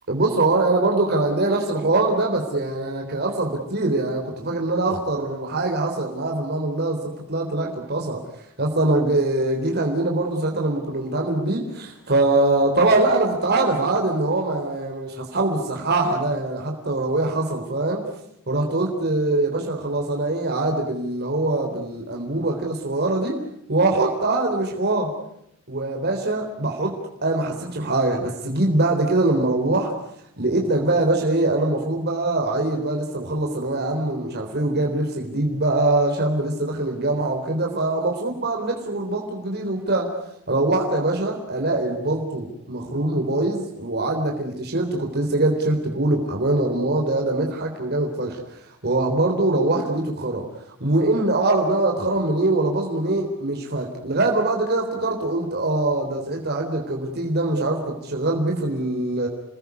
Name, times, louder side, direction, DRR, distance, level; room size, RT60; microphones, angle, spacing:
voice 1, 0.1-8.2 8.6-18.1 18.5-23.4 23.7-25.1 25.7-26.9 27.2-29.9 30.4-40.1 40.5-50.4 50.8-59.3, right 2 dB, 45° right, 1 dB, 3.7 m, -23 dB
29.0 x 20.5 x 9.6 m, 0.76 s
head